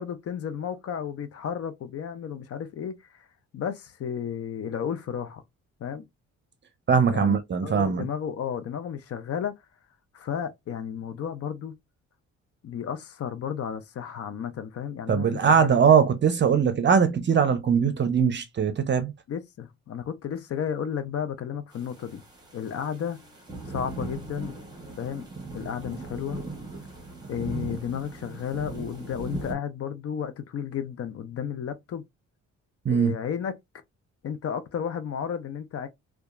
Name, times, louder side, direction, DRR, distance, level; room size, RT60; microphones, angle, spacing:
voice 1, 0.0-3.3 3.5-5.4 5.8-6.0 7.1-9.5 10.1-11.7 12.6-15.7 19.3-22.2 22.5-23.2 23.7-24.6 25.0-25.3 25.5-26.4 27.3-32.0 32.9-33.5 34.2-35.9, left 8 dB, 50° left, 0.5 m, -33 dB
voice 2, 6.9-8.1 15.1-19.1 32.8-33.1, right 6 dB, 40° right, 0.6 m, -21 dB
sound 1, 21.7-29.5, right 3 dB, 15° right, 1.1 m, -39 dB
2.7 x 2.3 x 2.4 m
cardioid pair, 90°, 30 cm